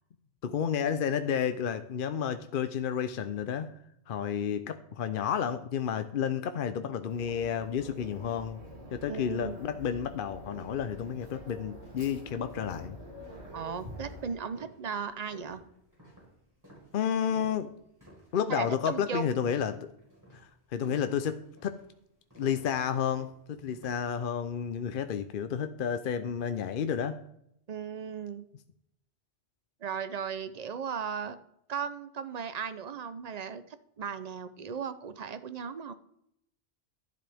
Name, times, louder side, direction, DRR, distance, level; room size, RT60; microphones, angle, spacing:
voice 1, 0.4-3.7 4.1-8.6 8.9-13.0 16.9-17.7 18.3-19.9 20.3-21.8 22.4-27.2, left 8 dB, 60° left, 10 dB, 0.7 m, -31 dB
sound 1, 7.1-14.3, equal, 80° right, 2.7 m, -47 dB
voice 2, 9.1-9.6 13.5-15.6 18.5-19.3 27.7-28.5 29.8-31.4 31.7-33.6 34.0-35.9, right 6 dB, 45° right, 12 dB, 0.6 m, -36 dB
sound 2, 9.9-18.4 18.7-19.1 19.4-24.1, equal, 15° right, 4.3 m, -54 dB
12.0 x 11.0 x 3.4 m, 0.77 s
omnidirectional pair, 1.1 m